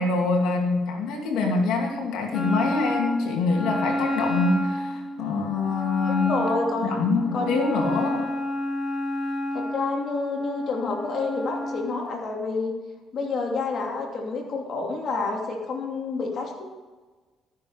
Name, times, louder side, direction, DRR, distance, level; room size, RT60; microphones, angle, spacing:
voice 1, 0.0-6.3 6.8-8.3, left 3 dB, 80° left, 1 dB, 2.5 m, -25 dB
Wind instrument woodwind instrument, 2.3-11.9, left 1 dB, 40° left, 2.1 m, -30 dB
voice 2, 6.1-7.0 7.3-7.7 9.5-12.7 13.1-16.7, left 3 dB, 60° left, 1 dB, 2.8 m, -28 dB
14.0 x 7.4 x 5.5 m, 1.3 s
supercardioid pair, 80°, 0 cm